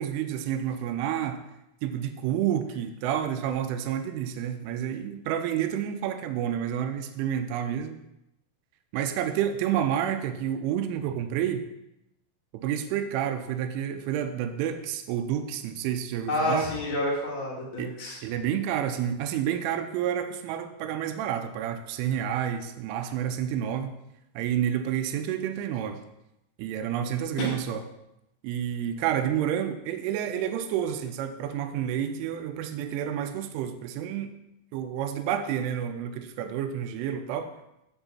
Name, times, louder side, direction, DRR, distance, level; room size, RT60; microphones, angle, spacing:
voice 1, 0.0-1.4 1.8-8.0 8.9-11.6 12.5-16.7 17.8-17.9 18.2-23.9 24.4-26.0 26.6-27.8 28.4-34.3 34.7-37.5, right 9 dB, 85° right, 7 dB, 3.1 m, -29 dB
voice 2, 16.3-18.2 27.4-27.5, left 1 dB, 80° left, -5 dB, 1.1 m, -29 dB
8.0 x 7.9 x 4.3 m, 0.86 s
omnidirectional pair, 5.9 m